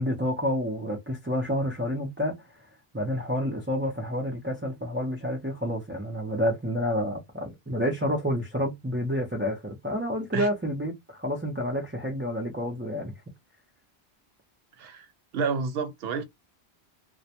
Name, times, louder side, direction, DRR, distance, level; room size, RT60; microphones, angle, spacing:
voice 1, 0.0-2.4 2.9-13.1, equal, 20° right, 0.3 m, -29 dB
voice 2, 14.8-15.1 15.3-16.2, right 5 dB, 70° right, 0.8 m, -29 dB
2.1 x 2.1 x 2.7 m
omnidirectional pair, 1.1 m